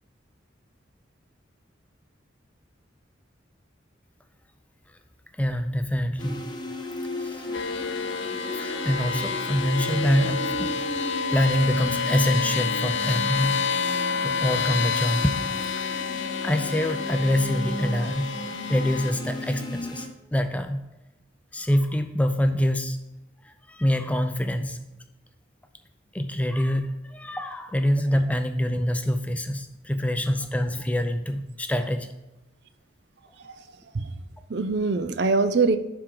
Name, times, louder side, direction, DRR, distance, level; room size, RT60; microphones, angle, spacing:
voice 1, 5.4-6.5 7.2-7.5 8.6-11.0 11.3-13.9 14.2-18.3 18.7-20.8 21.5-23.0 23.4-24.8 26.1-32.2, equal, 5° left, 7 dB, 0.4 m, -26 dB
sound 1, 6.2-20.1, left 1 dB, 25° left, 0.9 m, -35 dB
sound 2, 7.5-19.1, left 5 dB, 75° left, 0.6 m, -29 dB
voice 2, 33.3-34.2 34.5-35.8, right 4 dB, 60° right, 11 dB, 0.5 m, -24 dB
11.0 x 4.6 x 3.8 m, 0.98 s
head